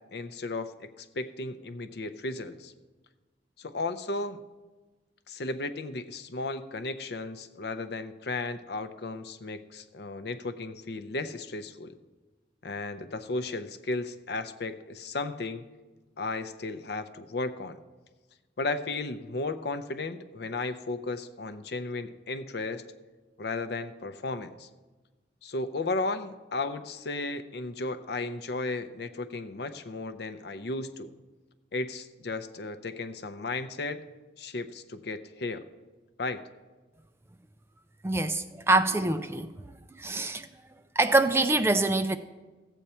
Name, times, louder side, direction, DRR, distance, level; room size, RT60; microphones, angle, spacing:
voice 1, 0.1-2.7 3.6-4.4 5.3-11.9 12.6-15.6 16.2-17.8 18.6-22.8 23.4-24.7 25.4-31.1 31.7-34.0 34.4-35.6 36.2-36.4, left 3 dB, 60° left, 0.6 m, -34 dB
voice 2, 38.0-39.5 40.0-40.5 41.0-42.2, right 2 dB, 15° right, 0.3 m, -24 dB
14.5 x 8.1 x 4.3 m
head